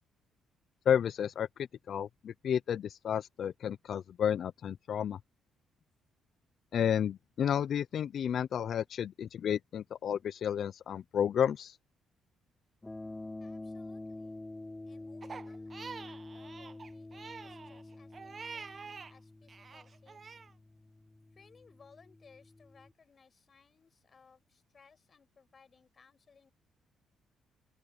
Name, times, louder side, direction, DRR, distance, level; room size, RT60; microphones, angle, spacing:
voice 1, 0.9-1.5 1.9-5.2 6.7-11.7, left 9 dB, 60° left, 0.5 m, -31 dB
sound 1, 12.8-22.9, left 2 dB, 15° left, 3.4 m, -47 dB
voice 2, 13.4-14.4 14.8-20.5 21.3-26.5, left 5 dB, 40° left, 7.6 m, -63 dB
Crying sobbing, 15.2-19.1 19.5-20.5, right 5 dB, 40° right, 1.0 m, -47 dB
open air
cardioid pair, 85°, 0 cm